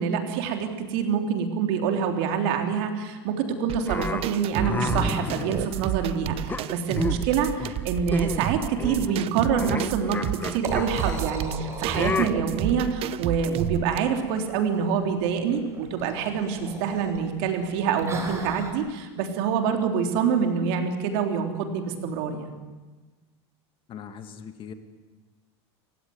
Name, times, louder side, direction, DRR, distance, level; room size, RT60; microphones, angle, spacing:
voice 1, 0.0-3.3 3.6-22.5, right 6 dB, 65° right, 5 dB, 3.6 m, -26 dB
sound 1, 3.7-14.0, right 13 dB, 45° right, 0.8 m, -31 dB
sound 2, 3.9-6.0 6.5-7.3 7.6-7.8 8.1-8.5 8.8-11.2 11.9-12.3, left 4 dB, 15° left, 1.3 m, -31 dB
Liquid, 10.0-18.7, right 2 dB, 20° right, 4.7 m, -39 dB
voice 2, 23.9-24.7, left 7 dB, 40° left, 8 dB, 2.2 m, -40 dB
28.0 x 16.5 x 9.6 m, 1.3 s
supercardioid pair, 125°, 14 cm